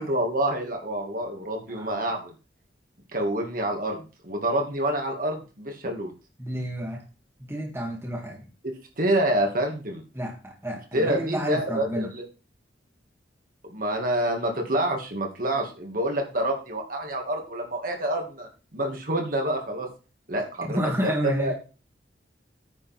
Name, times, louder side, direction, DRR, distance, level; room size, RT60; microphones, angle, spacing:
voice 1, 0.0-2.3 3.1-6.1 8.6-10.0 10.9-12.2 13.7-19.9 20.3-21.5, right 1 dB, 50° right, 2 dB, 2.4 m, -27 dB
voice 2, 1.7-2.1 6.4-7.0 7.4-8.5 10.1-12.1 20.7-21.5, equal, 15° right, 0 dB, 1.8 m, -30 dB
9.7 x 5.1 x 6.1 m, 0.33 s
head